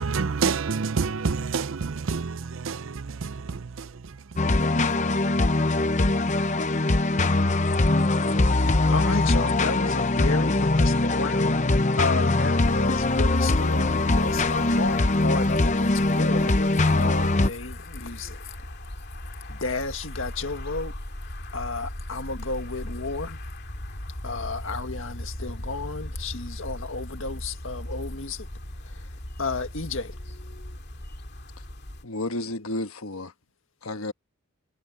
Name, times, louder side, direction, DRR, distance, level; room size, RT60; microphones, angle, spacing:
voice 1, 0.0-3.9, right 5 dB, 65° right, 0.6 m, -28 dB
sound 1, 4.4-17.5, left 2 dB, 35° left, 0.8 m, -22 dB
voice 2, 8.3-18.5 19.5-20.9 21.5-23.4 24.2-28.5 28.8-30.2, left 3 dB, 65° left, 1.8 m, -32 dB
sound 2, 12.6-32.0, left 1 dB, 50° left, 2.6 m, -38 dB
voice 3, 32.0-33.3 33.8-34.1, left 2 dB, 85° left, 1.4 m, -32 dB
head